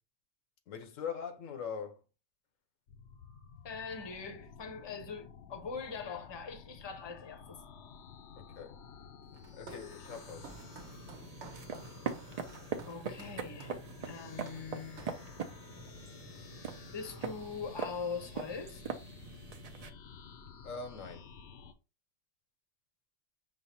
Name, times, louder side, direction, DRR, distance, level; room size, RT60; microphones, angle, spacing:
voice 1, 0.7-2.0 8.4-8.8 9.5-10.6 20.6-21.3, left 6 dB, 85° left, 1.1 m, -42 dB
sound 1, 2.9-21.7, left 6 dB, 70° left, 0.8 m, -52 dB
voice 2, 3.6-7.6 12.9-15.0 16.9-18.8, left 5 dB, 25° left, 0.7 m, -42 dB
Walk footsteps, 9.3-15.3 15.8-16.0 16.3-17.1, right 3 dB, 65° right, 1.2 m, -54 dB
sound 2, 10.0-19.9, right 6 dB, 50° right, 0.5 m, -42 dB
5.5 x 2.1 x 4.2 m
omnidirectional pair, 1.3 m